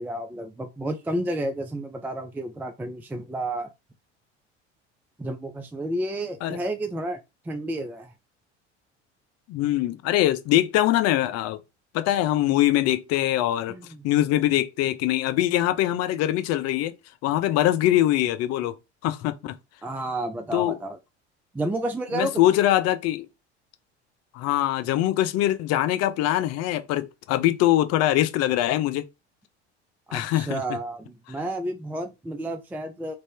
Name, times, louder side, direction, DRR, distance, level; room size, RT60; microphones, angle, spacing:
voice 1, 0.0-3.7 5.2-7.2 7.4-8.1 13.7-14.0 19.8-21.0 21.5-22.4 30.1-33.1, right 1 dB, 5° right, 0.4 m, -31 dB
voice 2, 9.5-11.6 11.9-13.8 14.0-16.9 17.2-18.8 19.0-19.5 20.5-20.7 22.1-23.3 24.3-29.1 30.1-30.6, left 13 dB, 45° left, 0.6 m, -23 dB
3.3 x 2.6 x 3.3 m
figure-of-eight pair, 65°, 34 cm